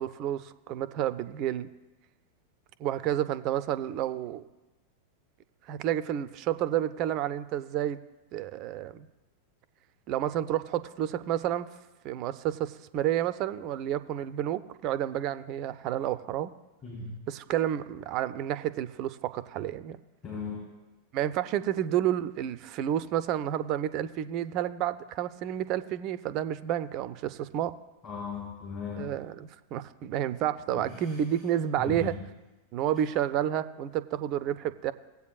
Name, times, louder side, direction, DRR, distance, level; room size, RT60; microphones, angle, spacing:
voice 1, 0.0-1.7 2.8-4.4 5.7-8.0 8.3-9.1 10.1-11.7 12.0-16.5 17.3-20.0 21.1-27.7 29.0-32.2 32.7-34.9, right 11 dB, 40° right, 14 dB, 0.4 m, -30 dB
voice 2, 16.8-17.1 20.2-20.6 28.0-29.1 30.7-31.2 31.8-32.1, left 4 dB, 35° left, -6 dB, 3.3 m, -37 dB
17.5 x 8.1 x 2.3 m, 1.1 s
figure-of-eight pair, 90°, 0 cm